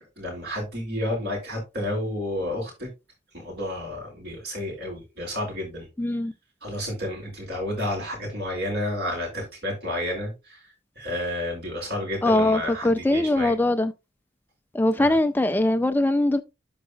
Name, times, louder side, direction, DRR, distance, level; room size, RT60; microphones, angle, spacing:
voice 1, 0.2-2.9 3.3-5.9 6.6-10.6 11.0-13.5 15.0-15.1, left 1 dB, 60° right, 5.3 m, -31 dB
voice 2, 6.0-6.3 12.2-13.9 14.7-16.4, left 2 dB, 10° left, 0.3 m, -21 dB
12.5 x 4.8 x 2.3 m
head